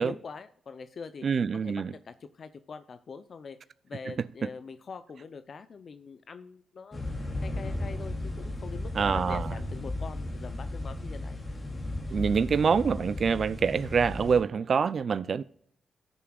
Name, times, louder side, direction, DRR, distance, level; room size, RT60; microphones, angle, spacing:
voice 1, 0.0-1.2 1.6-3.6 3.8-7.1 7.4-11.4, left 5 dB, 55° left, 0.5 m, -43 dB
voice 2, 1.2-1.9 9.0-9.5 12.1-15.4, right 6 dB, 55° right, 0.3 m, -26 dB
sound 1, 6.9-14.4, left 1 dB, 25° left, 2.7 m, -35 dB
17.0 x 6.8 x 2.3 m
cardioid pair, 75°, 0 cm